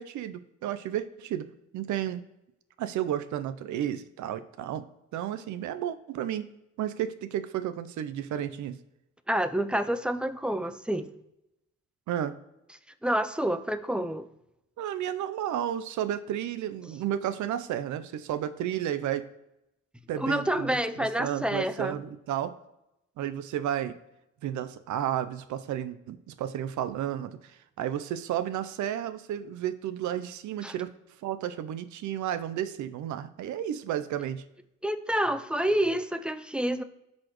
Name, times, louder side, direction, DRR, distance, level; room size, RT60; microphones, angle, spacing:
voice 1, 0.0-1.5 1.7-2.2 2.8-4.9 5.1-6.5 6.8-8.8 12.1-12.4 14.8-19.3 20.1-22.6 23.2-24.0 24.4-30.9 31.2-34.4, right 10 dB, 75° right, 12 dB, 0.6 m, -32 dB
voice 2, 9.3-11.1 13.0-14.3 20.2-22.0 30.6-30.7 34.8-36.8, right 1 dB, 5° right, 10 dB, 0.4 m, -28 dB
12.5 x 4.3 x 3.0 m, 0.88 s
cardioid pair, 90°, 30 cm